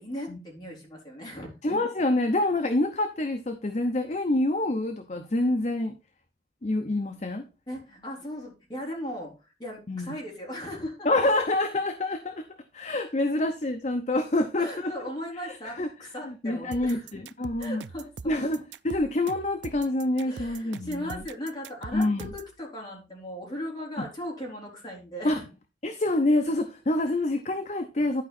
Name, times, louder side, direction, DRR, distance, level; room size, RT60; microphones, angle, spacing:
voice 1, 0.0-1.5 7.7-11.1 14.6-17.2 17.6-18.4 20.2-22.0 22.3-25.4, equal, 25° left, -2 dB, 3.6 m, -38 dB
voice 2, 1.6-6.0 6.6-7.4 9.9-10.1 11.0-12.5 12.7-14.9 15.4-15.9 16.2-17.8 18.2-21.2 21.9-22.3 24.0-24.1 25.2-25.4 25.8-28.2, left 2 dB, 40° left, 6 dB, 0.7 m, -27 dB
sound 1, 16.7-22.5, right 5 dB, 75° right, 0.4 m, -42 dB
11.5 x 4.9 x 4.2 m, 0.31 s
head